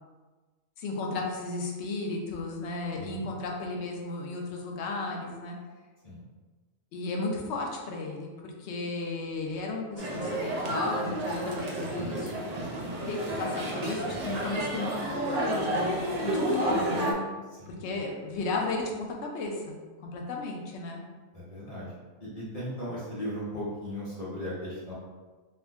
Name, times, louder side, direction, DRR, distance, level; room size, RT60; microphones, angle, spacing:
voice 1, 0.8-5.6 6.9-12.4 12.8-15.9 16.2-17.3 17.7-18.9 19.2-21.0, left 3 dB, 65° left, 0 dB, 0.8 m, -34 dB
voice 2, 3.0-3.3 6.0-6.2 17.5-17.8 21.3-24.9, equal, 30° left, -10 dB, 1.1 m, -37 dB
sound 1, 10.0-17.1, right 1 dB, 75° right, 0.3 m, -31 dB
3.5 x 2.1 x 3.4 m, 1.3 s
omnidirectional pair, 1.4 m